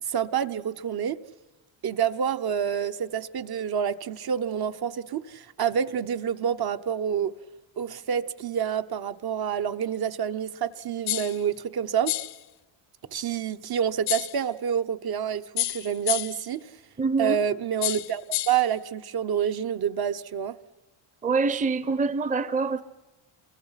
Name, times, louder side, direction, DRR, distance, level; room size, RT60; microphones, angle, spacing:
voice 1, 0.0-1.2 1.8-7.4 7.8-12.2 13.1-16.7 17.2-20.6, right 8 dB, 50° right, 1.0 m, -28 dB
sound 1, 11.1-11.4 12.1-12.4 14.1-14.4 15.6-16.5 17.8-18.7, left 14 dB, 55° left, 0.7 m, -29 dB
voice 2, 17.0-17.4 21.2-22.8, right 4 dB, 15° right, 0.7 m, -25 dB
29.0 x 23.5 x 5.8 m
cardioid pair, 115°, 48 cm